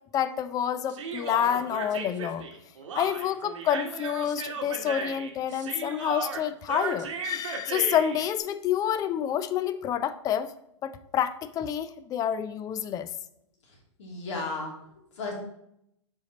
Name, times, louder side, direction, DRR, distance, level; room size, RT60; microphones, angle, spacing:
voice 1, 0.1-2.4 2.9-10.5 10.8-13.1, left 9 dB, 20° left, 13 dB, 0.4 m, -28 dB
Human voice, 0.9-8.3, right 5 dB, 75° right, 1.1 m, -35 dB
voice 2, 13.7-15.3, left 3 dB, 65° left, -1 dB, 2.7 m, -36 dB
6.2 x 5.1 x 4.0 m, 0.76 s
hypercardioid pair, 125°, 16 cm